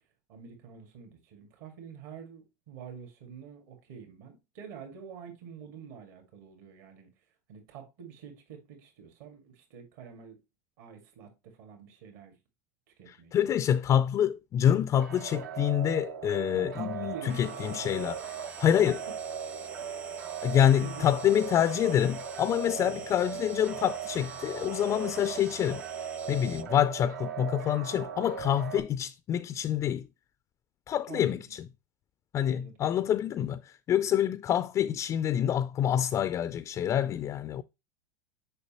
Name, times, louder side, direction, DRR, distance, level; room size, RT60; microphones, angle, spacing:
voice 1, 0.3-7.1 7.5-10.4 10.8-12.4 13.0-13.3 13.7-13.8 16.5-17.9 18.6-18.9 20.8-21.0 22.8-22.9 28.6-28.7 31.1-31.4 32.4-33.1 34.2-34.3, right 7 dB, 65° right, 2.0 m, -47 dB
voice 2, 13.1-19.0 20.4-25.8 26.3-30.1 30.9-31.7 32.3-37.6, left 10 dB, 30° left, 0.3 m, -27 dB
sound 1, 15.0-28.8, right 8 dB, 80° right, 1.0 m, -39 dB
sound 2, 17.3-26.6, right 5 dB, 15° right, 0.6 m, -46 dB
6.6 x 5.2 x 2.9 m
hypercardioid pair, 100°, 10 cm